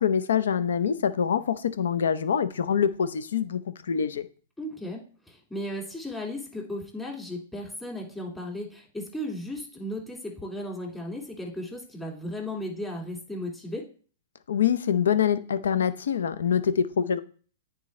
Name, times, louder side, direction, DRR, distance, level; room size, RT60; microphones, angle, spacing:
voice 1, 0.0-4.3 14.5-17.2, left 7 dB, 80° left, 13 dB, 0.7 m, -25 dB
voice 2, 4.6-13.9, left 1 dB, 10° left, -1 dB, 2.2 m, -35 dB
9.3 x 3.9 x 3.2 m, 0.42 s
hypercardioid pair, 125°, 0 cm